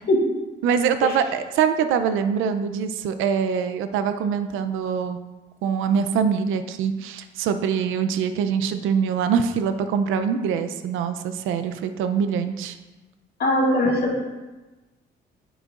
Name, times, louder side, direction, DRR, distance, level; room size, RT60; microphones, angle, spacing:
voice 1, 0.6-5.2 5.6-12.8, right 7 dB, 90° right, 10 dB, 0.5 m, -24 dB
voice 2, 13.4-14.2, left 1 dB, 55° left, -3 dB, 2.0 m, -20 dB
9.8 x 8.0 x 2.5 m, 1.2 s
cardioid pair, 90°, 20 cm